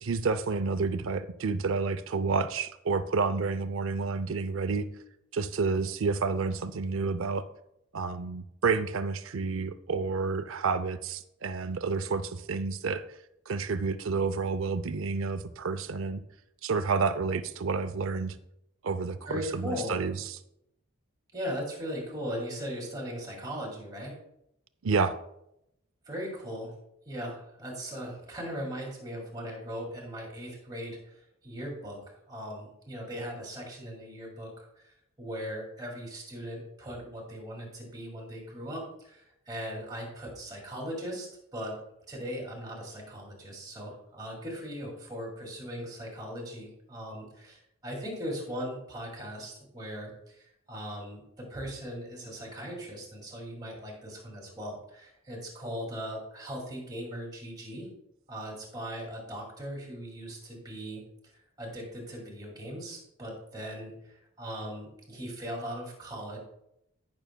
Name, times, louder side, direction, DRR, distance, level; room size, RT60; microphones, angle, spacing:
voice 1, 0.0-4.9 5.3-7.5 7.9-13.0 13.5-16.2 16.6-18.4 18.8-20.4 24.8-25.2, right 4 dB, 70° right, 12 dB, 0.5 m, -30 dB
voice 2, 19.3-20.0 21.3-24.2 26.1-26.7 27.1-41.8 42.1-57.9 58.3-66.4, equal, 20° right, 0 dB, 2.2 m, -39 dB
16.0 x 6.1 x 2.2 m, 0.79 s
head